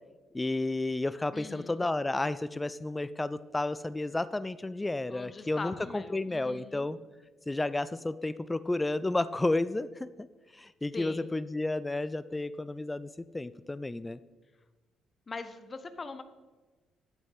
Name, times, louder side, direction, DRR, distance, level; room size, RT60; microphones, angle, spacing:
voice 1, 0.3-7.0 7.5-10.3 10.5-14.2, left 2 dB, 20° left, 16 dB, 0.4 m, -32 dB
voice 2, 1.3-1.9 5.1-6.9 10.9-11.4 15.3-16.2, left 4 dB, 35° left, 11 dB, 1.0 m, -42 dB
11.0 x 8.9 x 4.2 m, 1.2 s
figure-of-eight pair, 45°, 0 cm